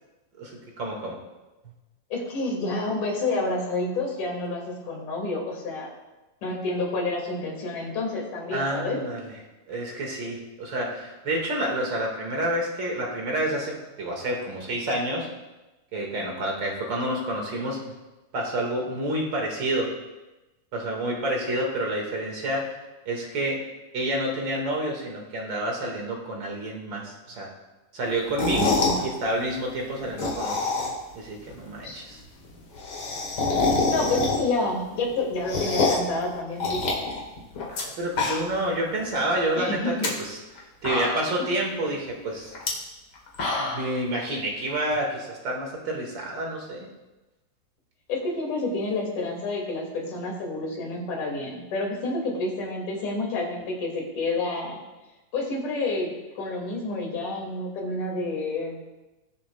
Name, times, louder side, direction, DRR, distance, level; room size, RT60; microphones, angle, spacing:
voice 1, 0.4-1.2 8.5-9.3 9.7-15.3 15.9-17.8 18.3-19.9 20.7-22.7 23.1-23.6 23.9-27.5 27.9-30.7 31.1-32.2 37.7-40.4 40.8-42.5 43.6-46.9, right 1 dB, 40° right, -1 dB, 2.1 m, -29 dB
voice 2, 2.1-5.9 6.4-9.0 28.4-29.0 31.8-32.0 33.9-36.8 39.6-40.1 48.1-54.8 55.3-58.8, left 2 dB, 70° left, -2 dB, 3.7 m, -29 dB
sound 1, 28.2-29.0 30.0-31.1 31.5-31.6 31.8-31.9 32.1-32.2 32.4-34.7 35.0-36.1 36.6-37.8 38.1-38.7 39.0-39.1 39.8-40.1 40.6-40.7 40.8-41.5 42.5-42.7 43.1-43.9, left 3 dB, 45° left, 2.2 m, -26 dB
20.0 x 7.2 x 2.3 m, 1.1 s
omnidirectional pair, 3.8 m